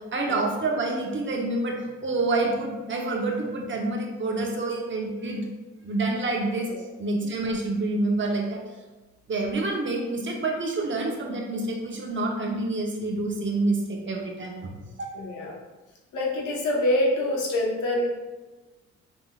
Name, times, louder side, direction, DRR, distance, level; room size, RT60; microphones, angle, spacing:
voice 1, 0.1-5.4 5.8-6.7 7.0-8.6 9.3-14.7 15.0-15.1, right 2 dB, 40° right, 0 dB, 0.9 m, -27 dB
voice 2, 15.1-15.5 16.1-18.1, left 1 dB, 75° left, -2 dB, 1.2 m, -25 dB
5.1 x 3.6 x 2.4 m, 1.2 s
cardioid pair, 90°, 30 cm